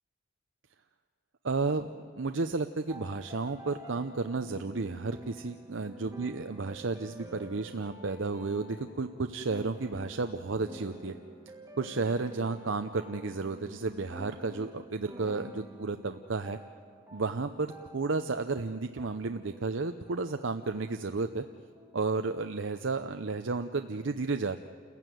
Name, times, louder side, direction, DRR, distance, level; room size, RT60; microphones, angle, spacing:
voice 1, 1.4-11.1 11.8-16.6 17.1-21.4 21.9-24.6, right 3 dB, 70° right, 7 dB, 0.7 m, -32 dB
sound 1, 2.9-22.1, equal, 15° right, 1.5 m, -49 dB
29.0 x 15.0 x 9.4 m, 2.1 s
head